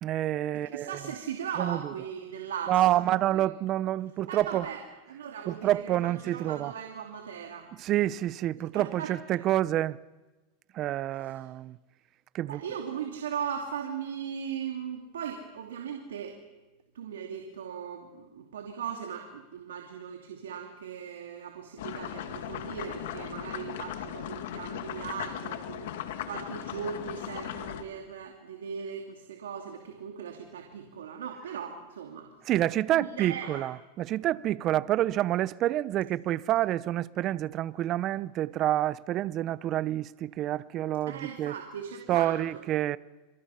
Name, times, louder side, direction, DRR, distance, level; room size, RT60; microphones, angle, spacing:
voice 1, 0.0-1.0 1.6-1.9 2.7-4.6 5.5-6.7 7.8-10.0 10.7-11.8 12.3-12.6 32.5-41.5 42.1-43.0, right 13 dB, 40° right, 0.8 m, -28 dB
voice 2, 0.5-3.5 4.3-4.8 5.1-7.7 8.7-9.1 12.4-16.4 16.9-25.9 26.3-32.3 32.9-33.6 41.1-42.4, right 7 dB, 90° right, 2.6 m, -38 dB
sound 1, 21.8-27.8, left 10 dB, 75° left, 2.2 m, -38 dB
27.0 x 25.5 x 5.8 m
hypercardioid pair, 115°, 0 cm